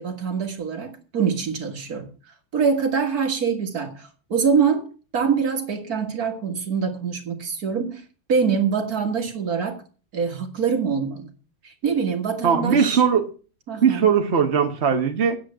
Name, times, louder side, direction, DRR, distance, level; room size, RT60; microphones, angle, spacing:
voice 1, 0.0-2.1 2.5-8.0 8.3-9.8 10.1-11.3 11.6-13.0 13.7-14.1, right 6 dB, 65° right, 5 dB, 2.3 m, -24 dB
voice 2, 12.4-13.3 13.8-15.4, right 7 dB, 45° right, 4 dB, 1.4 m, -19 dB
9.6 x 7.8 x 7.5 m, 0.37 s
omnidirectional pair, 1.7 m